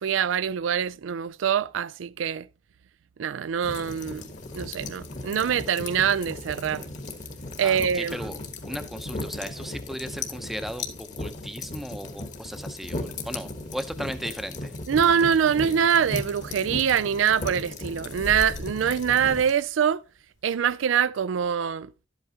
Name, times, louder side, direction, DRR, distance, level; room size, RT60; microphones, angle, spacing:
voice 1, 0.0-2.5 3.2-4.2 4.5-6.8 7.6-8.3 14.9-20.0 20.4-21.9, right 8 dB, 90° right, 0.4 m, -24 dB
sound 1, 3.4-20.6, left 2 dB, 75° left, 0.9 m, -48 dB
sound 2, 3.6-19.5, left 2 dB, 40° left, 1.2 m, -37 dB
voice 2, 7.6-8.4 8.6-14.7, equal, ahead, 0.7 m, -36 dB
11.0 x 8.2 x 2.8 m
head